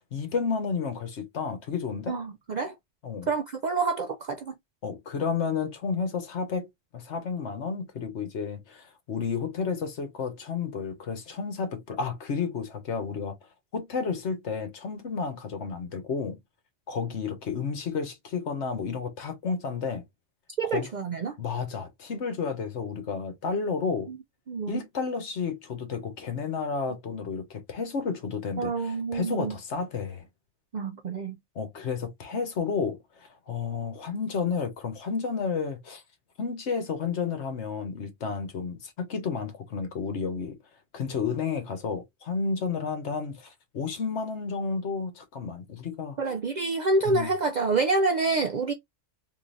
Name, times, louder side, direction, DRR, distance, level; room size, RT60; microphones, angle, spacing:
voice 1, 0.0-2.2 3.0-3.3 4.8-6.7 6.9-13.4 13.7-16.4 16.9-20.0 20.6-20.9 21.4-24.1 24.7-30.2 31.5-36.0 36.4-40.6 40.9-46.2 47.0-47.3, left 5 dB, 70° left, 1.3 m, -31 dB
voice 2, 2.1-2.7 3.3-4.5 20.6-21.4 24.1-24.2 24.5-24.8 28.6-29.5 30.7-31.3 46.2-48.7, right 3 dB, 60° right, 0.4 m, -27 dB
3.7 x 2.8 x 2.5 m
omnidirectional pair, 1.2 m